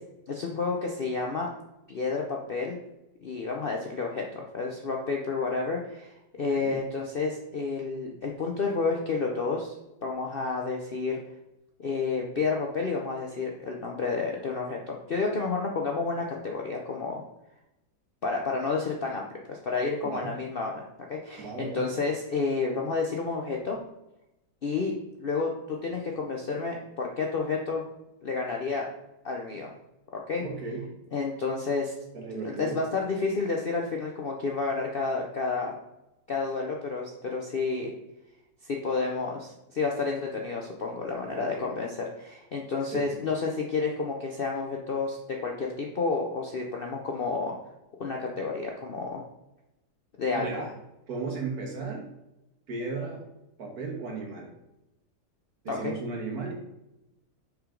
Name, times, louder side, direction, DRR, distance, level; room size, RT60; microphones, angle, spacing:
voice 1, 0.3-1.5 1.9-2.8 3.2-6.1 6.4-9.7 10.0-11.2 11.8-17.2 18.2-20.8 21.1-23.8 24.6-24.9 25.2-27.8 28.2-28.9 29.2-29.7 30.1-30.4 31.1-31.9 32.4-35.7 36.3-37.9 38.6-47.6 48.0-49.2 50.2-50.7 55.7-55.9, left 4 dB, 55° left, 0 dB, 0.6 m, -30 dB
voice 2, 6.4-6.8 20.0-20.3 21.4-21.8 30.4-30.8 32.1-32.8 41.3-41.7 42.9-43.1 50.3-50.7 51.1-52.1 52.7-53.2 53.6-54.5 55.6-56.5, right 4 dB, 65° right, 1 dB, 1.8 m, -35 dB
5.9 x 5.0 x 3.7 m, 0.92 s
omnidirectional pair, 1.8 m